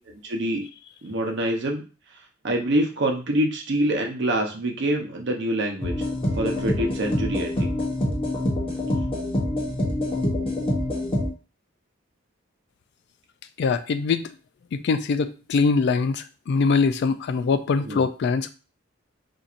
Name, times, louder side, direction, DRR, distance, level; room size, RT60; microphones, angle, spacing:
voice 1, 0.1-0.6 1.0-1.8 2.4-5.9 6.3-7.7 17.9-18.0, right 1 dB, 60° right, 0.8 m, -25 dB
sound 1, 5.8-11.3, left 1 dB, 30° left, 0.8 m, -26 dB
voice 2, 13.6-14.3 14.7-18.5, left 4 dB, 55° left, 0.3 m, -23 dB
4.3 x 2.6 x 2.5 m
head